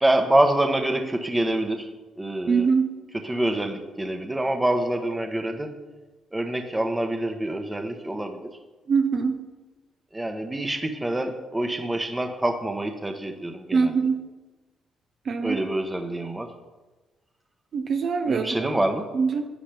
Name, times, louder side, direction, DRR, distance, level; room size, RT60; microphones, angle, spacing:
voice 1, 0.0-1.9 2.2-2.7 3.2-5.7 6.3-8.4 10.1-14.0 15.4-16.5 18.3-19.1, right 1 dB, 15° right, 5 dB, 1.1 m, -26 dB
voice 2, 2.5-2.9 8.9-9.4 13.7-14.2 15.3-15.6 17.7-18.7 19.1-19.5, right 5 dB, 55° right, 6 dB, 0.9 m, -23 dB
11.5 x 8.9 x 3.4 m, 1.2 s
cardioid pair, 90°, 0 cm